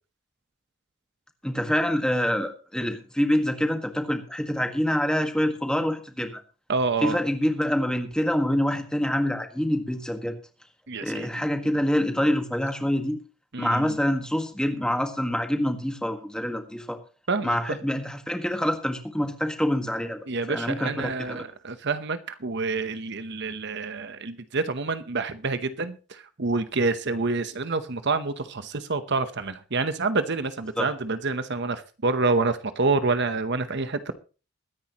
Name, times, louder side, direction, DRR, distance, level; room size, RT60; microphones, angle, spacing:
voice 1, 1.4-6.4 7.0-10.4 11.0-13.2 13.6-17.0 17.4-21.4 30.8-30.9, equal, 5° left, 6 dB, 1.6 m, -26 dB
voice 2, 6.7-7.2 10.9-11.5 13.5-14.0 17.3-17.8 20.3-34.1, right 3 dB, 50° right, 11 dB, 0.9 m, -27 dB
22.5 x 10.0 x 3.0 m, 0.34 s
head